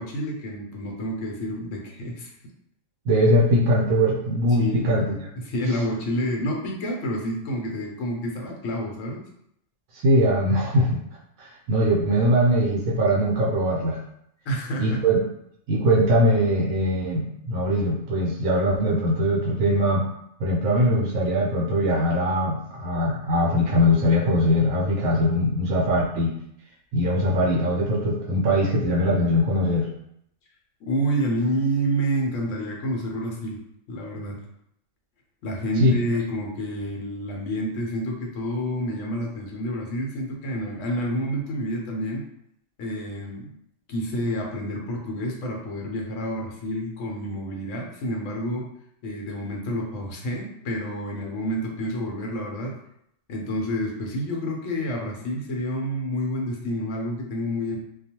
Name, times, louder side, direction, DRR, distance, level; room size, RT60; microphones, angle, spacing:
voice 1, 0.0-2.3 4.6-5.1 5.4-9.2 14.5-15.0 30.9-33.6 33.9-34.4 35.4-42.2 42.8-43.5 43.9-48.7 49.0-52.7 53.3-57.8, equal, 70° left, -1 dB, 1.0 m, -29 dB
voice 2, 3.1-5.2 9.9-11.0 11.4-14.0 14.8-15.2 15.7-20.0 20.4-26.3 26.9-29.9 35.8-35.9, equal, 75° right, -5 dB, 1.0 m, -21 dB
2.3 x 2.3 x 2.8 m, 0.76 s
omnidirectional pair, 1.5 m